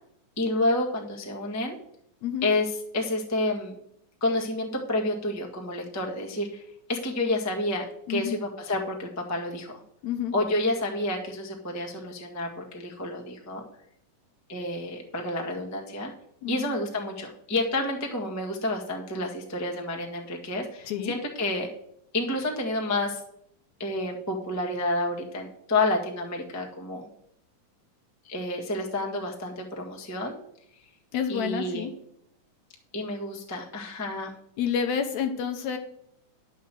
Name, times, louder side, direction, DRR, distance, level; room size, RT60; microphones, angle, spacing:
voice 1, 0.4-1.7 2.4-3.8 4.2-6.6 6.9-9.7 10.3-13.6 14.5-16.1 16.5-21.7 22.1-23.2 23.8-27.1 28.2-30.3 31.3-31.9 32.9-34.3, left 2 dB, 15° left, 0 dB, 0.5 m, -29 dB
voice 2, 10.0-10.4 16.4-16.7 20.9-21.1 31.1-31.9 34.6-35.8, left 8 dB, 70° left, 6 dB, 2.0 m, -29 dB
10.5 x 5.6 x 7.6 m, 0.74 s
omnidirectional pair, 3.7 m